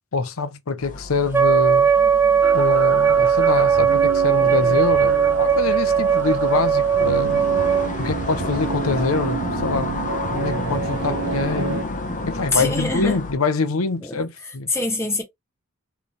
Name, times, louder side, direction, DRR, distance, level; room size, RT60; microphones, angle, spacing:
voice 1, 0.1-1.9 2.5-7.4 8.0-9.9 10.3-11.9 12.3-14.7, left 3 dB, 70° left, 0.7 m, -25 dB
sound 1, 0.8-13.3, left 2 dB, 40° left, 1.1 m, -31 dB
Wind instrument woodwind instrument, 1.3-7.9, right 7 dB, 10° right, 0.6 m, -18 dB
sound 2, 2.4-11.8, right 6 dB, 55° right, 0.4 m, -30 dB
voice 2, 12.5-13.2 14.0-14.2 14.7-15.2, left 2 dB, 15° left, 1.5 m, -24 dB
4.3 x 3.3 x 3.2 m
head